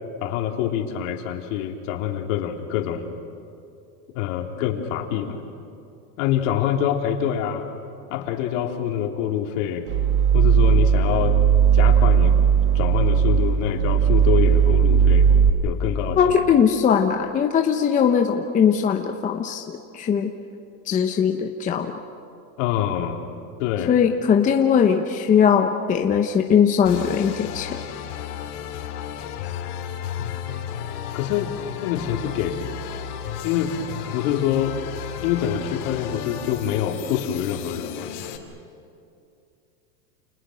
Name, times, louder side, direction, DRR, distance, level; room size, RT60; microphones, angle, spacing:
voice 1, 0.2-3.1 4.1-5.4 6.2-7.7 8.1-9.8 10.3-11.4 11.7-12.4 12.7-15.3 15.6-16.2 22.6-23.2 23.6-24.0 30.2-30.6 31.1-31.5 31.8-32.8 33.4-34.8 35.2-38.1, left 10 dB, 55° left, 3 dB, 3.2 m, -25 dB
sound 1, 9.9-15.5, right 7 dB, 55° right, 2.0 m, -17 dB
voice 2, 16.2-20.3 20.9-21.9 23.9-27.7, left 7 dB, 15° left, 4 dB, 0.9 m, -20 dB
sound 2, 26.8-38.4, left 9 dB, 70° left, 3.3 m, -33 dB
29.5 x 29.5 x 6.4 m, 2.5 s
supercardioid pair, 150°, 46 cm